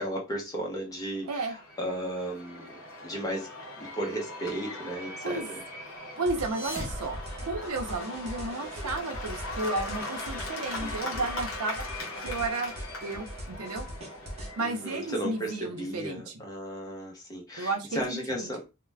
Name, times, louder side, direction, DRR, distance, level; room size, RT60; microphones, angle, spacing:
voice 1, 0.0-3.5 3.8-5.6 10.8-11.3 14.6-18.6, right 1 dB, 15° left, 0.7 m, -35 dB
Cheering / Applause / Crowd, 1.1-15.8, left 2 dB, 60° left, 0.8 m, -40 dB
voice 2, 6.2-11.9 12.2-12.7 13.0-13.9 14.6-16.2 17.6-18.5, right 3 dB, 85° right, 0.6 m, -33 dB
sound 1, 6.3-14.5, equal, 30° right, 0.6 m, -41 dB
sound 2, 6.3-8.1, equal, 45° right, 0.9 m, -41 dB
2.3 x 2.1 x 3.2 m
head